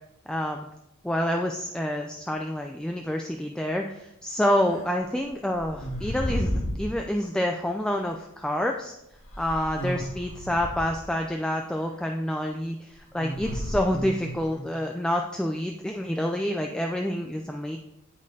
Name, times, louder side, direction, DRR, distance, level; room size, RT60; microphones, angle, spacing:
voice 1, 0.3-0.7 1.0-6.5 6.8-8.9 9.4-17.8, left 1 dB, 5° left, 2 dB, 0.3 m, -28 dB
sound 1, 4.6-4.8 5.6-6.9 8.1-8.2 9.2-11.0 13.2-14.6, equal, 75° left, 1.8 m, -32 dB
8.5 x 8.3 x 2.7 m, 0.85 s
head